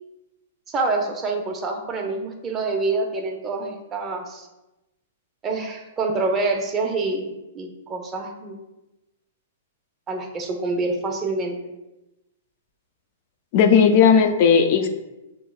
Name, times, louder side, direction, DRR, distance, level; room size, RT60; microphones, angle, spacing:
voice 1, 0.7-4.5 5.4-8.6 10.1-11.6, right 3 dB, 20° right, 2 dB, 0.7 m, -26 dB
voice 2, 13.5-14.9, left 6 dB, 50° left, 6 dB, 0.4 m, -15 dB
5.8 x 3.1 x 2.3 m, 0.98 s
hypercardioid pair, 120°, 0 cm